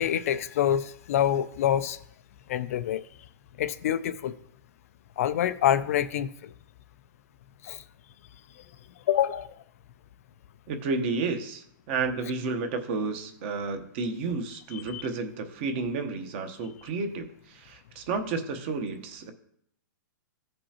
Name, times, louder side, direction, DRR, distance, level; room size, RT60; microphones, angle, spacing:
voice 1, 0.0-2.0 2.5-3.0 3.6-4.3 5.2-6.5 7.6-7.8 9.1-9.5 14.7-15.0, left 10 dB, 45° left, 0.4 m, -26 dB
voice 2, 10.7-19.3, right 4 dB, 35° right, 1.0 m, -31 dB
16.0 x 5.3 x 2.9 m
hypercardioid pair, 165°, 11 cm